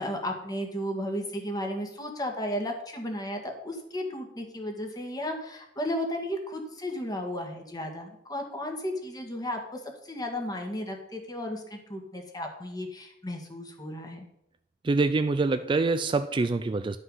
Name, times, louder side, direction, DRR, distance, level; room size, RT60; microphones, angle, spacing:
voice 1, 0.0-14.2, left 1 dB, 20° left, 3 dB, 1.7 m, -34 dB
voice 2, 14.8-17.0, right 3 dB, 25° right, 10 dB, 0.3 m, -25 dB
11.0 x 5.6 x 5.5 m, 0.79 s
head